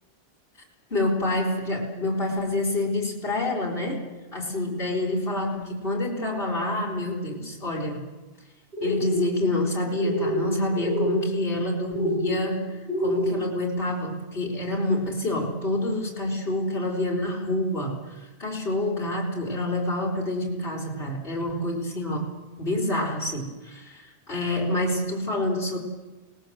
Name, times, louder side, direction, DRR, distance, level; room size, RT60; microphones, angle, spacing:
voice 1, 0.9-4.1 4.3-8.0 8.8-22.3 22.6-25.8, left 1 dB, 55° left, -3 dB, 4.1 m, -27 dB
sound 1, 8.7-9.2 10.0-10.5 10.7-11.2 11.9-12.4 12.9-13.4, left 1 dB, 45° right, 7.1 m, -26 dB
25.5 x 19.0 x 7.7 m, 1.2 s
omnidirectional pair, 1.1 m